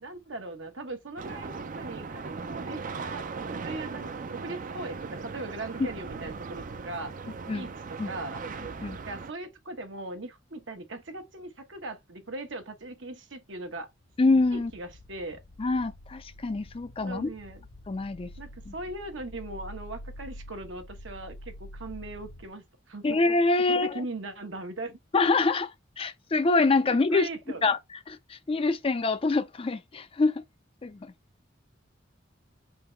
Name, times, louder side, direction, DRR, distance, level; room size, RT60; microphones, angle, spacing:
voice 1, 0.0-3.2 3.6-7.1 7.5-8.4 9.0-13.9 14.5-15.4 17.0-17.6 18.4-23.2 23.7-25.0 26.9-27.7, right 2 dB, 75° right, 1.1 m, -39 dB
sound 1, 1.2-9.3, right 4 dB, 45° right, 0.5 m, -38 dB
sound 2, 14.1-22.5, left 1 dB, 55° left, 0.9 m, -47 dB
voice 2, 14.2-14.7 15.6-17.3 17.9-18.3 18.7-18.8 23.0-24.0 25.1-25.7 26.0-27.3 27.6-27.8 28.1-30.4 30.8-31.1, left 3 dB, 30° left, 0.4 m, -25 dB
3.8 x 2.9 x 4.4 m
head